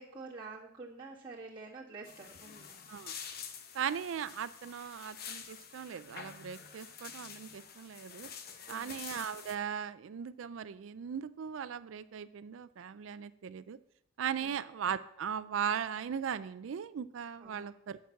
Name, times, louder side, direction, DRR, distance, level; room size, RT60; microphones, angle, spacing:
voice 1, 0.0-2.8 8.7-9.0 14.4-14.6 17.4-17.7, right 3 dB, 25° right, -7 dB, 1.9 m, -48 dB
sound 1, 2.0-9.5, left 7 dB, 50° left, 0.9 m, -48 dB
voice 2, 3.7-8.3 8.7-13.8 14.2-18.0, right 8 dB, 75° right, 13 dB, 0.4 m, -38 dB
9.5 x 6.0 x 5.9 m, 0.79 s
head